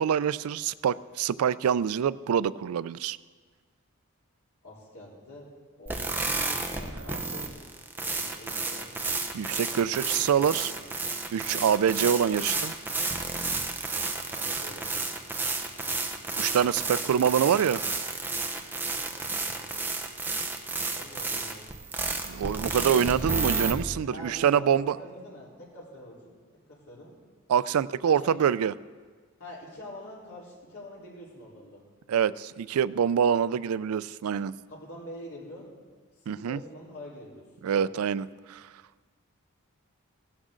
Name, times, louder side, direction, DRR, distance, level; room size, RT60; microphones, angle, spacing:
voice 1, 0.0-3.2 6.9-7.0 9.3-10.7 11.3-12.7 16.4-17.8 22.1-25.0 27.5-28.7 32.1-34.5 36.3-36.6 37.6-38.7, right 8 dB, 85° right, 18 dB, 0.3 m, -25 dB
voice 2, 4.6-5.5 5.8-7.5 7.9-8.9 9.7-10.9 14.3-15.0 16.7-17.0 17.4-17.7 19.1-19.6 20.9-21.8 24.1-26.4 26.7-27.1 28.0-28.4 29.4-31.8 34.7-35.7 36.2-38.1, left 1 dB, 85° left, -5 dB, 4.0 m, -46 dB
sound 1, 5.9-23.7, right 3 dB, 10° right, 0.9 m, -31 dB
16.0 x 12.5 x 3.8 m, 1.5 s
head